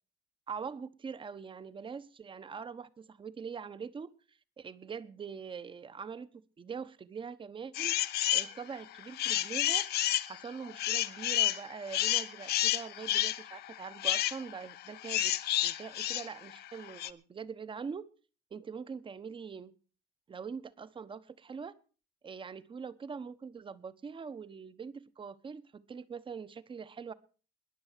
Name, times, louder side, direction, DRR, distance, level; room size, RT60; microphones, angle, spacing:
voice 1, 0.5-4.1 4.6-6.3 6.6-8.0 8.3-9.8 10.3-15.3 15.6-18.1 18.5-19.7 20.3-21.7 22.2-27.1, right 6 dB, 30° right, 15 dB, 1.1 m, -43 dB
sound 1, 7.7-8.5 8.9-17.1, left 13 dB, 70° left, 0.9 m, -30 dB
21.0 x 7.0 x 6.7 m, 0.38 s
cardioid pair, 110°, 17 cm